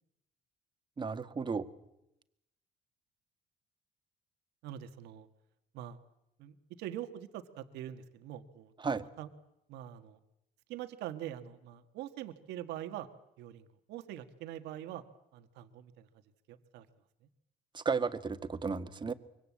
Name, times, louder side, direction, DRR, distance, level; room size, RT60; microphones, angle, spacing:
voice 1, 1.0-1.7 8.8-9.0 17.7-19.1, right 5 dB, 25° right, 10 dB, 1.7 m, -33 dB
voice 2, 4.6-5.3 5.7-6.0 6.4-8.7 9.2-9.3 9.7-10.2 10.7-13.1 13.4-15.0 15.3-16.1 16.5-16.9, right 12 dB, 85° right, 8 dB, 1.7 m, -44 dB
25.0 x 24.0 x 8.6 m, 0.85 s
cardioid pair, 110°, 17 cm